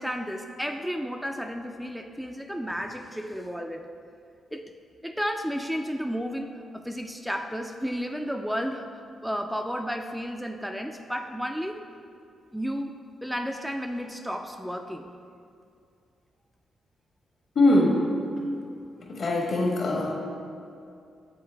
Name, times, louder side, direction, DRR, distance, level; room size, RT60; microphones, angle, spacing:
voice 1, 0.0-3.9 4.5-4.6 5.0-11.8 12.5-12.9 13.2-15.1, equal, ahead, 4 dB, 0.4 m, -32 dB
voice 2, 17.5-18.1 19.1-20.1, left 2 dB, 65° left, -2 dB, 1.4 m, -22 dB
7.4 x 3.9 x 3.3 m, 2.4 s
supercardioid pair, 60°, 0 cm